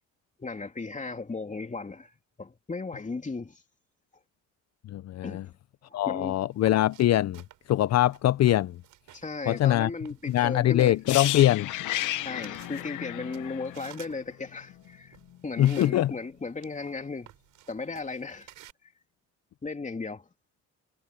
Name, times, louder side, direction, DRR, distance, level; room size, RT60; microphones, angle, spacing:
voice 1, 0.4-2.1 2.4-3.6 5.2-5.5 5.9-6.4 9.1-11.0 12.2-15.2 15.4-17.3 17.7-18.5 19.6-20.3, left 3 dB, 25° left, 3.0 m, -36 dB
voice 2, 4.9-5.4 5.9-8.8 9.5-9.9 10.3-11.7 15.6-16.1, left 13 dB, 60° left, 0.6 m, -23 dB
sound 1, 6.5-18.7, right 14 dB, 90° right, 7.0 m, -53 dB
sound 2, 11.1-14.9 15.2-15.4, left 15 dB, 90° left, 1.0 m, -33 dB
cardioid pair, 90°, 30 cm